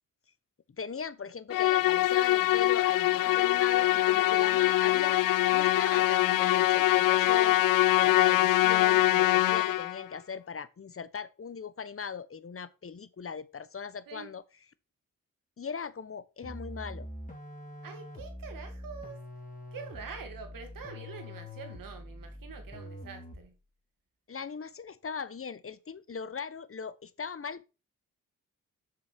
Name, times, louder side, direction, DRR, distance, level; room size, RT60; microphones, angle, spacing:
voice 1, 0.8-5.2 5.5-7.6 7.9-14.4 15.6-17.1 24.3-27.7, left 6 dB, 40° left, 1.1 m, -39 dB
Musical instrument, 1.5-10.0, left 16 dB, 80° left, 0.5 m, -24 dB
sound 1, 16.4-23.6, left 1 dB, 25° left, 3.0 m, -44 dB
voice 2, 17.8-19.2 19.7-23.6, right 6 dB, 80° right, 2.4 m, -45 dB
7.0 x 6.4 x 6.2 m
supercardioid pair, 50°, 33 cm